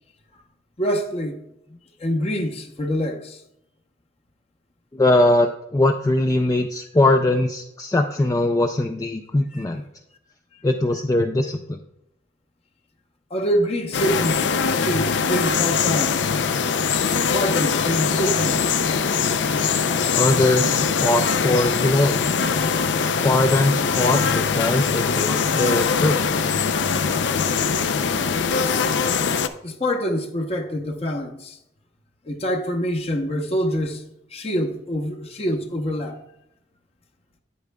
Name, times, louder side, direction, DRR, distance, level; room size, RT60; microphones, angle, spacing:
voice 1, 0.8-1.4 1.7-3.4 13.3-16.2 17.3-18.7 19.5-19.8 29.6-31.6 32.3-34.0 34.3-36.2, equal, 35° left, 0.7 m, -25 dB
voice 2, 4.9-9.8 10.6-11.8 20.1-22.3 23.0-26.7, left 2 dB, 20° left, 0.3 m, -21 dB
sound 1, 13.9-29.5, left 6 dB, 75° left, 0.5 m, -22 dB
9.3 x 8.4 x 2.2 m
head